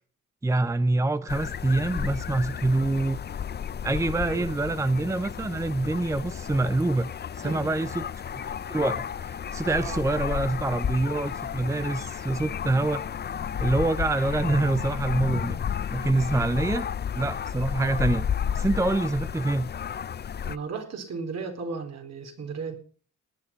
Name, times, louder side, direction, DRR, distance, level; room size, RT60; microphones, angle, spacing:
voice 1, 0.4-3.2 3.8-7.1 7.4-8.1 8.7-13.0 13.6-15.6 15.9-16.9 17.1-18.3 18.5-19.7, right 2 dB, 10° right, 0.7 m, -26 dB
sound 1, 1.3-20.6, left 8 dB, 35° left, 0.6 m, -32 dB
voice 2, 4.2-4.6 7.4-7.7 9.6-10.5 20.4-22.7, right 5 dB, 60° right, 4.2 m, -36 dB
18.0 x 10.0 x 5.5 m
cardioid pair, 90°, 30 cm